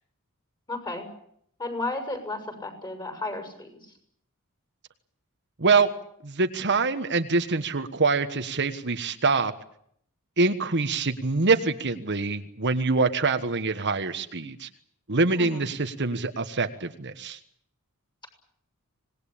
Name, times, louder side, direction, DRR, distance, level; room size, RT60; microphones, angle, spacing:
voice 1, 0.7-1.1 1.6-4.0 15.3-15.7, left 2 dB, 20° left, 8 dB, 7.0 m, -33 dB
voice 2, 5.6-5.9 6.2-9.5 10.4-14.7 15.1-17.4, right 3 dB, 50° right, 8 dB, 1.4 m, -25 dB
26.0 x 20.0 x 8.7 m, 0.68 s
head